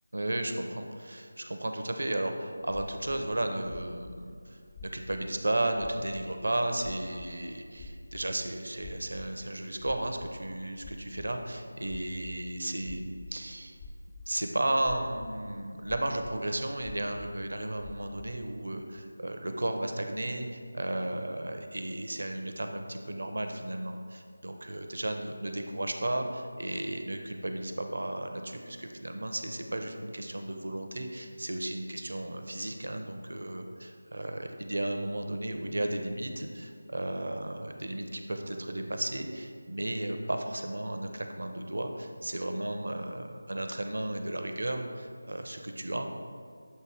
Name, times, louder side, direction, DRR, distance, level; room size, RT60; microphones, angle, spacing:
voice 1, 0.1-13.8 14.3-46.1, right 1 dB, 60° right, 5 dB, 0.6 m, -34 dB
sound 1, 2.7-3.3 3.6-4.2 4.7-5.2 5.7-6.5 6.8-8.3 8.8-9.3 9.6-10.3 10.8-11.3 11.8-12.4 12.8-13.4 13.7-14.4 14.8-15.3 15.6-16.4 16.8-17.3 17.8-18.4, left 3 dB, 10° left, 0.3 m, -46 dB
7.6 x 2.7 x 4.8 m, 2.2 s
figure-of-eight pair, 165°, 0 cm